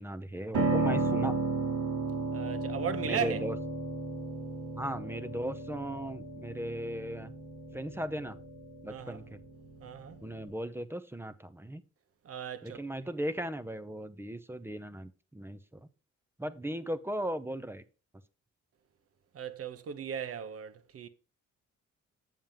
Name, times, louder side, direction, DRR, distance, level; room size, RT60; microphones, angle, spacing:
voice 1, 0.0-1.3 3.0-3.6 4.7-7.3 7.7-8.4 8.8-9.4 10.2-11.8 12.6-15.6 16.4-17.8, right 1 dB, 10° right, 0.7 m, -37 dB
Piano, 0.5-10.5, right 3 dB, 75° right, 3.6 m, -34 dB
voice 2, 2.3-3.4 8.9-9.2 9.8-10.2 12.2-12.8 19.3-21.1, right 8 dB, 50° right, 0.9 m, -37 dB
7.3 x 7.3 x 3.6 m
cardioid pair, 90°, 30 cm